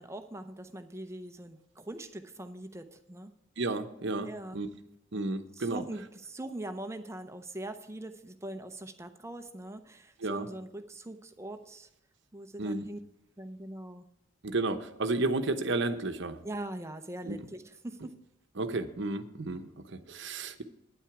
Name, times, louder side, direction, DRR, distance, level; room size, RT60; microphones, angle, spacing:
voice 1, 0.0-3.3 4.2-4.6 5.5-11.9 12.3-13.0 13.4-14.1 16.4-18.1, right 1 dB, 15° right, 8 dB, 0.6 m, -42 dB
voice 2, 3.6-4.7 5.1-5.8 10.2-10.5 12.6-12.8 14.4-16.4 17.2-17.4 18.6-20.6, right 2 dB, 60° right, 8 dB, 0.9 m, -32 dB
9.5 x 9.0 x 4.8 m, 0.86 s
head